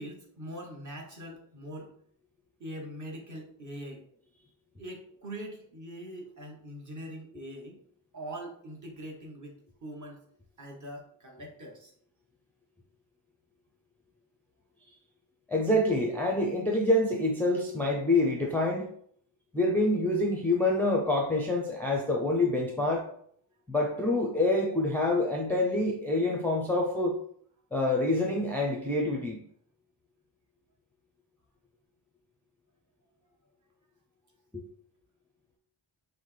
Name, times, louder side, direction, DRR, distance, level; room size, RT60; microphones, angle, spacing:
voice 1, 0.0-1.9 2.6-4.0 4.8-7.8 8.1-9.5 9.8-10.2 10.6-11.9, right 1 dB, 35° right, 0 dB, 1.1 m, -42 dB
voice 2, 15.5-18.9 19.5-23.1 23.7-27.1 27.7-29.4, left 2 dB, 5° left, -1 dB, 0.5 m, -26 dB
5.6 x 2.1 x 3.3 m, 0.62 s
wide cardioid pair, 115°, 49 cm